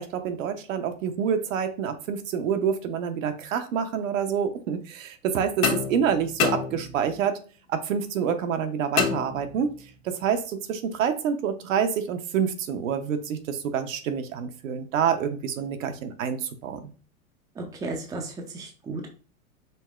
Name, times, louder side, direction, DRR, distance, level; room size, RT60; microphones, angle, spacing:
voice 1, 0.0-7.4 7.7-9.7 10.0-16.9, right 7 dB, 70° right, 7 dB, 0.8 m, -27 dB
sound 1, 5.6-7.3 9.0-9.9, left 7 dB, 55° left, 1.1 m, -28 dB
voice 2, 17.6-19.2, right 3 dB, 10° right, 1 dB, 0.5 m, -34 dB
5.3 x 2.7 x 2.4 m, 0.38 s
hypercardioid pair, 115°, 41 cm